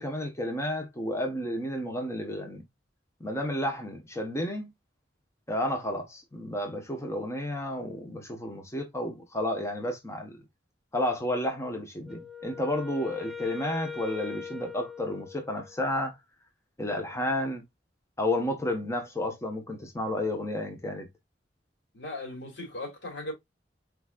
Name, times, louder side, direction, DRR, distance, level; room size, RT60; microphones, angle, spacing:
voice 1, 0.0-2.6 3.2-4.7 5.5-10.4 10.9-16.1 16.8-17.6 18.2-21.1, left 1 dB, 15° left, 1.0 m, -31 dB
Wind instrument woodwind instrument, 12.0-15.9, left 6 dB, ahead, 0.7 m, -41 dB
voice 2, 21.9-23.3, left 1 dB, 80° left, 2.7 m, -37 dB
4.7 x 4.0 x 2.4 m
head